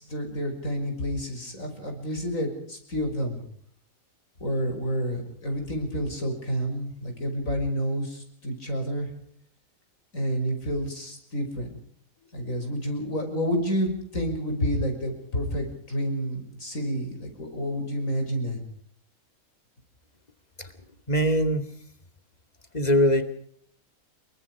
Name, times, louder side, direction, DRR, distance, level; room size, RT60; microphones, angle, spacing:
voice 1, 0.0-3.4 4.4-9.1 10.1-11.8 12.3-18.6, equal, 65° left, 4 dB, 6.3 m, -29 dB
voice 2, 21.1-21.7 22.7-23.2, equal, 30° left, 9 dB, 2.6 m, -22 dB
28.0 x 23.5 x 4.9 m, 0.63 s
omnidirectional pair, 1.5 m